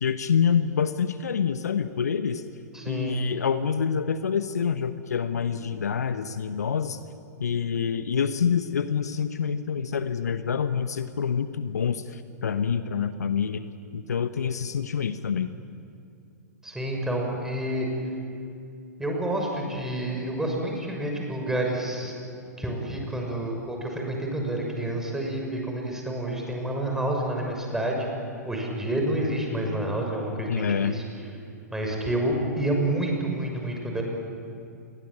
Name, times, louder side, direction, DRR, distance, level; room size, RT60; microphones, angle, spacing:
voice 1, 0.0-2.4 2.9-7.0 7.4-13.6 13.9-15.5 30.5-31.0, left 7 dB, 70° left, 11 dB, 1.1 m, -26 dB
voice 2, 2.7-3.2 16.6-17.9 19.0-22.1 22.6-28.1 28.4-31.0 31.7-34.0, right 1 dB, 5° right, 0 dB, 6.3 m, -29 dB
28.5 x 22.5 x 9.0 m, 2.5 s
figure-of-eight pair, 105°, 9 cm